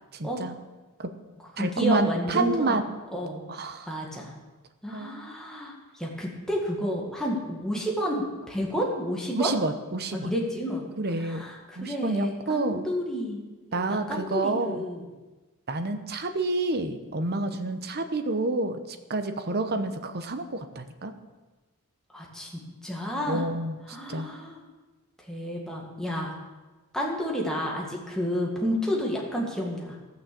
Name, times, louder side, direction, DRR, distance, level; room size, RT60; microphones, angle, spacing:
voice 1, 0.1-0.5 1.0-1.1 1.6-2.8 3.5-3.9 4.9-5.1 9.3-10.3 11.0-11.4 11.8-12.9 13.7-14.8 15.7-21.1 23.3-23.8 24.1-24.3, right 2 dB, 45° right, 8 dB, 0.9 m, -28 dB
voice 2, 1.6-2.8 3.1-3.4 3.9-4.3 4.8-9.5 10.1-10.8 11.2-15.0 22.1-23.4 23.9-24.6 25.3-26.4 26.9-30.0, equal, 5° left, -3 dB, 1.8 m, -31 dB
16.0 x 6.4 x 6.9 m, 1.2 s
head